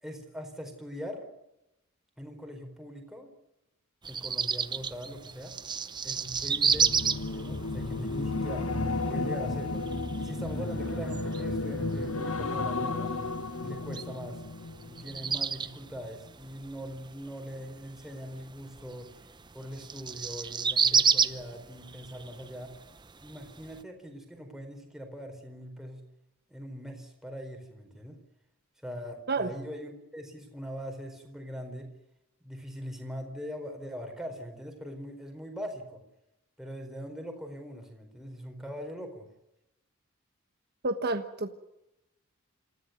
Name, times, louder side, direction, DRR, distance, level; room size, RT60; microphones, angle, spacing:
voice 1, 0.0-1.3 2.2-3.3 4.1-5.6 6.0-8.7 9.1-13.1 13.6-14.4 14.9-19.1 19.5-22.7 23.2-26.0 26.5-28.2 28.8-31.9 32.4-36.0 36.6-39.3, equal, ahead, 3 dB, 4.4 m, -41 dB
sound 1, 4.0-23.8, right 6 dB, 20° right, 0.8 m, -33 dB
sound 2, 6.3-15.6 16.0-16.3, left 2 dB, 75° left, 1.7 m, -33 dB
voice 2, 40.8-41.5, right 3 dB, 50° right, 6 dB, 1.3 m, -29 dB
27.5 x 15.0 x 9.4 m, 0.91 s
head